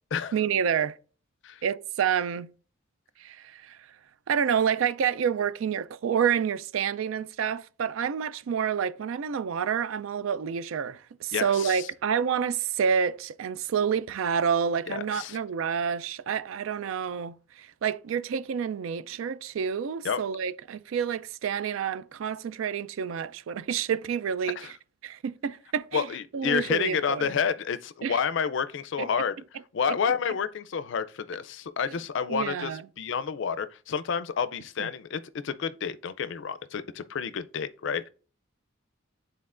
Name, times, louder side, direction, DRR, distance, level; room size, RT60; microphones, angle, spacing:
voice 1, 0.3-1.0 1.6-2.5 3.2-3.8 4.3-24.7 25.0-26.1 26.3-27.3 28.0-28.2 29.0-29.1 29.9-30.0 32.3-32.8 34.8-34.9, right 7 dB, 80° right, 0.4 m, -28 dB
voice 2, 11.3-11.9 14.9-15.4 20.0-20.2 24.6-24.7 25.9-29.3 29.7-38.1, left 6 dB, 65° left, 0.4 m, -29 dB
10.5 x 3.9 x 2.5 m
head